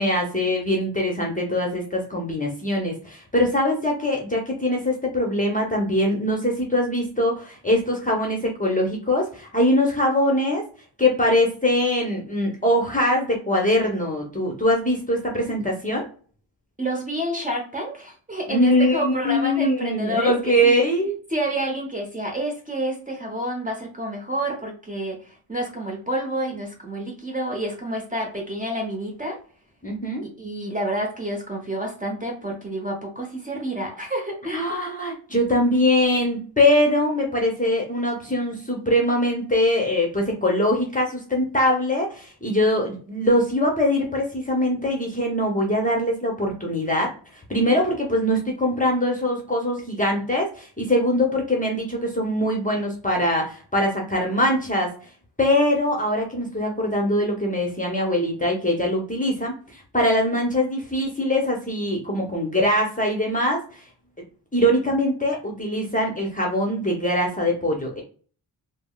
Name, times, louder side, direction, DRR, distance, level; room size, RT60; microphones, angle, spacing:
voice 1, 0.0-10.6 11.0-16.1 18.5-21.1 29.8-30.3 34.5-54.9 55.4-63.8 64.5-68.0, left 1 dB, 15° left, 0 dB, 0.9 m, -22 dB
voice 2, 16.8-20.8 21.3-29.4 30.2-34.7, right 1 dB, 15° right, 0 dB, 0.9 m, -29 dB
3.4 x 2.1 x 2.3 m, 0.40 s
cardioid pair, 65°, 48 cm